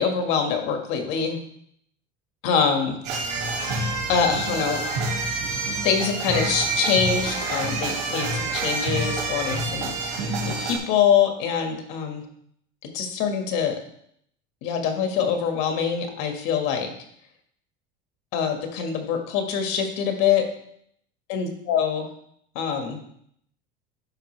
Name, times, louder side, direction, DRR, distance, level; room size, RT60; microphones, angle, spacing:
voice 1, 0.0-1.4 2.4-3.0 4.1-4.8 5.8-12.2 12.9-13.8 14.6-16.9 18.3-20.4 21.3-22.1 22.5-23.0, left 7 dB, 70° left, 4 dB, 1.6 m, -24 dB
sound 1, 3.0-10.8, right 3 dB, 85° right, 2.5 m, -27 dB
12.5 x 5.4 x 3.2 m, 0.69 s
cardioid pair, 155°, 21 cm